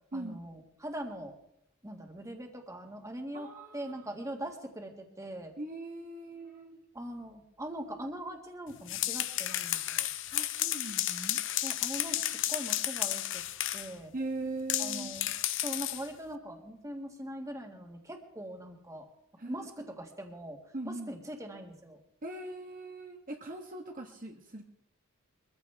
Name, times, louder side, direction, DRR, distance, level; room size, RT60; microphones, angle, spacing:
voice 1, 0.1-1.3 1.8-5.5 6.9-10.1 11.6-13.4 13.7-14.1 14.8-15.3 15.6-19.1 19.5-20.6 20.8-22.0, right 1 dB, 15° right, 3 dB, 1.9 m, -42 dB
voice 2, 3.3-4.0 5.6-6.8 10.3-11.4 14.1-15.1 19.4-19.9 20.7-21.1 22.2-24.6, right 2 dB, 40° right, 2 dB, 1.3 m, -40 dB
sound 1, 8.7-13.9 14.7-16.1, left 13 dB, 65° left, 0.7 m, -32 dB
23.0 x 14.5 x 3.5 m, 0.76 s
head